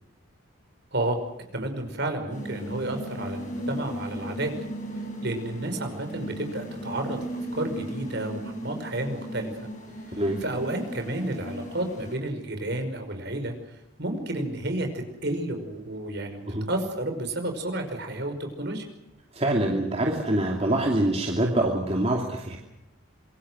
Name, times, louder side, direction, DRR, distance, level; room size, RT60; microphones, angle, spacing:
voice 1, 1.5-4.5 5.0-7.2 7.5-9.7 10.1-18.9, right 1 dB, 55° right, 6 dB, 5.5 m, -31 dB
sound 1, 2.3-12.2, right 1 dB, 40° left, 7.4 m, -36 dB
voice 2, 19.3-22.6, right 1 dB, 30° right, 0 dB, 2.7 m, -25 dB
26.5 x 23.0 x 6.3 m, 0.86 s
head